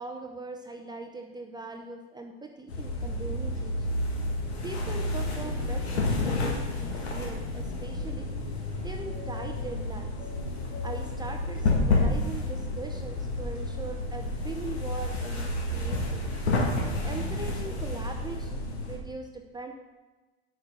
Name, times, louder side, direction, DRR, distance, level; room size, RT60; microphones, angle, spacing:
voice 1, 0.0-3.9 4.6-8.3 8.8-10.2 10.8-16.3 17.0-19.7, right 3 dB, 15° right, 3 dB, 0.7 m, -40 dB
sound 1, 2.7-19.0, left 2 dB, 80° left, 1.7 m, -30 dB
6.4 x 6.0 x 6.1 m, 1.2 s
hypercardioid pair, 90°, 32 cm